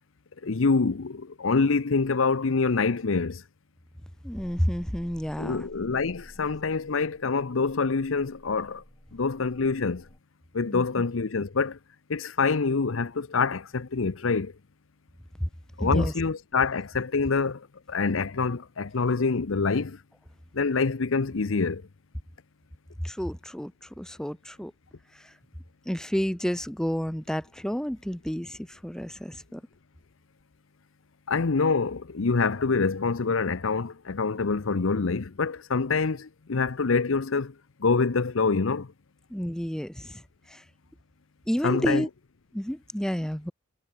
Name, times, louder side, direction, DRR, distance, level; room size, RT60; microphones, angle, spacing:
voice 1, 0.4-3.4 5.4-8.8 9.1-10.0 10.5-11.8 12.1-14.5 15.8-20.0 20.5-21.8 31.3-37.5 37.8-38.9 41.6-42.1, left 4 dB, 90° left, 0.8 m, -26 dB
voice 2, 4.2-5.6 10.7-10.9 15.4-15.5 15.8-16.1 23.0-23.7 24.0-24.7 25.9-29.6 39.3-40.2 40.5-40.6 41.5-42.1 42.5-43.5, equal, 5° left, 0.6 m, -30 dB
sound 1, 4.3-10.2, equal, 20° left, 5.0 m, -51 dB
head